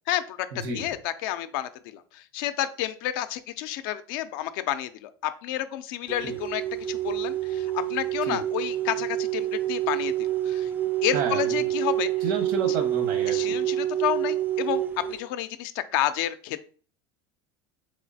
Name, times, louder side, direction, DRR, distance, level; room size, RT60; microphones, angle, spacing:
voice 1, 0.1-6.6 6.9-10.7 11.0-12.1 13.3-14.8 15.1-16.7, left 13 dB, 70° left, 11 dB, 0.4 m, -30 dB
sound 1, 6.1-15.2, right 12 dB, 15° right, 0.3 m, -27 dB
voice 2, 11.1-11.4 12.2-13.6, right 4 dB, 70° right, 6 dB, 0.9 m, -30 dB
3.6 x 3.1 x 2.7 m, 0.42 s
supercardioid pair, 115°, 12 cm